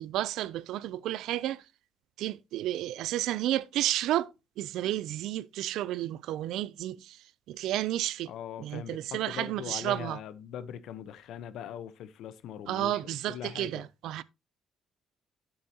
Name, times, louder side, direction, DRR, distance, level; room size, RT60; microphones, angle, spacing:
voice 1, 0.0-1.6 2.2-8.3 8.6-10.2 12.7-14.2, right 13 dB, 80° right, 0.4 m, -32 dB
voice 2, 8.3-13.8, left 9 dB, 75° left, 0.8 m, -41 dB
10.0 x 7.8 x 2.8 m
cardioid pair, 80°, 0 cm